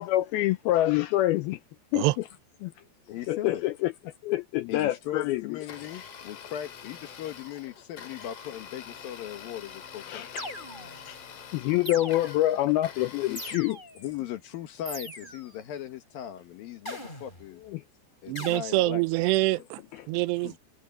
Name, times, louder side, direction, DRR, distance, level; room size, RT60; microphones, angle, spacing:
voice 1, 0.0-1.6 1.9-2.2 2.6-2.7 3.3-3.9 4.2-5.6 10.1-10.5 11.1-11.2 11.5-13.8 17.7-17.8 20.0-20.1, left 15 dB, 85° left, 2.2 m, -26 dB
voice 2, 2.8-3.6 4.7-10.3 13.3-13.4 14.0-17.6 18.2-19.1 20.4-20.6, left 11 dB, 65° left, 2.7 m, -38 dB
Domestic sounds home sounds, 5.5-13.5, left 7 dB, 45° left, 2.3 m, -45 dB
sound 1, 10.4-11.1 11.9-12.6 13.4-14.1 14.9-15.6 16.9-17.5 18.4-18.6, equal, 10° left, 8.0 m, -40 dB
voice 3, 18.3-19.8 20.1-20.5, right 19 dB, 85° right, 2.7 m, -25 dB
omnidirectional pair, 5.0 m